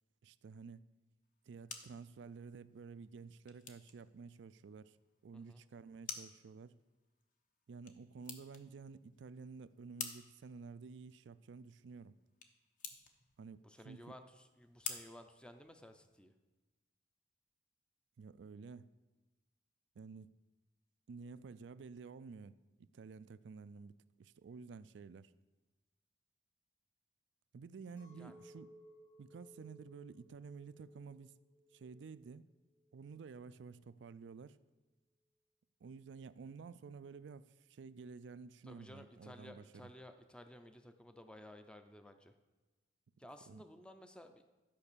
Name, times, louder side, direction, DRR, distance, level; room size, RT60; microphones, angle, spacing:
voice 1, 0.2-0.9 1.5-5.0 5.2-6.8 7.7-12.2 13.4-14.1 18.2-18.9 20.0-20.3 21.1-25.3 27.5-28.7 29.2-31.3 31.7-32.5 32.9-34.6 35.8-39.6 43.5-43.6, right 5 dB, 75° right, 0.4 m, -52 dB
sound 1, 1.2-16.2, left 6 dB, 45° left, 0.9 m, -52 dB
voice 2, 13.6-16.3 28.2-28.4 38.6-42.4 43.2-44.4, left 1 dB, 5° left, 0.5 m, -55 dB
Chink clink, 28.0-33.4, equal, 80° left, 2.9 m, -62 dB
12.0 x 5.4 x 6.8 m
head